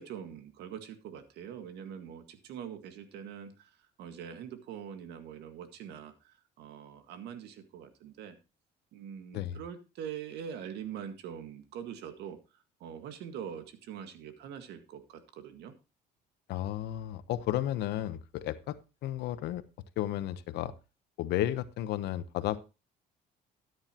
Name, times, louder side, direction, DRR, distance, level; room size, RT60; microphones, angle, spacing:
voice 1, 0.0-3.7 4.0-8.4 8.9-12.4 12.8-15.7, right 8 dB, 80° right, 9 dB, 1.8 m, -43 dB
voice 2, 16.5-18.8 19.0-19.6 20.0-20.7 21.2-22.6, left 13 dB, 80° left, 13 dB, 1.0 m, -33 dB
13.5 x 9.7 x 2.9 m, 0.29 s
cardioid pair, 110°, 17 cm